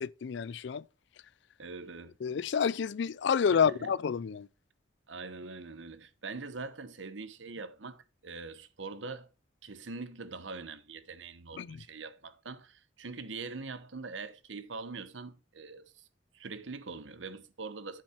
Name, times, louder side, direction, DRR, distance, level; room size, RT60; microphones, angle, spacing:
voice 1, 0.0-0.8 2.2-4.5 11.5-11.8, left 6 dB, 60° left, 0.4 m, -29 dB
voice 2, 1.6-2.2 3.5-3.9 5.1-9.3 9.6-16.0 16.3-18.0, right 4 dB, 70° right, 1.0 m, -43 dB
8.7 x 7.3 x 4.4 m
head